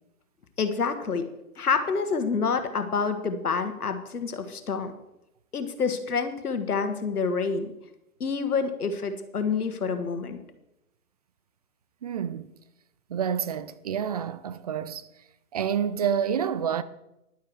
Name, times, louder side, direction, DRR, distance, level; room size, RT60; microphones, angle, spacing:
voice 1, 0.6-1.2 1.6-4.9 5.5-7.7 8.2-10.4, left 5 dB, 80° left, 1.7 m, -27 dB
voice 2, 12.0-12.5 13.1-15.1 15.5-16.8, right 8 dB, 30° right, 0.4 m, -28 dB
11.0 x 9.7 x 4.8 m
hypercardioid pair, 125°, 44 cm